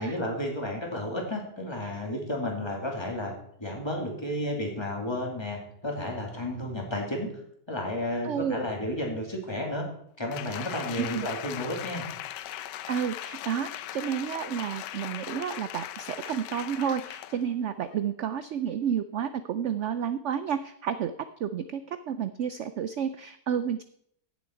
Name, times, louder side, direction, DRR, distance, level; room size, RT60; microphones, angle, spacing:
voice 1, 0.0-3.3 3.6-7.4 7.7-9.9 10.2-12.0, left 1 dB, 15° left, 0 dB, 2.5 m, -32 dB
voice 2, 8.2-8.7 11.0-11.3 12.9-21.1 21.4-23.8, right 8 dB, 85° right, 12 dB, 0.6 m, -31 dB
Applause, 10.3-17.4 17.9-18.0, left 12 dB, 90° left, 1.2 m, -39 dB
15.5 x 7.2 x 4.5 m, 0.70 s
omnidirectional pair, 1.8 m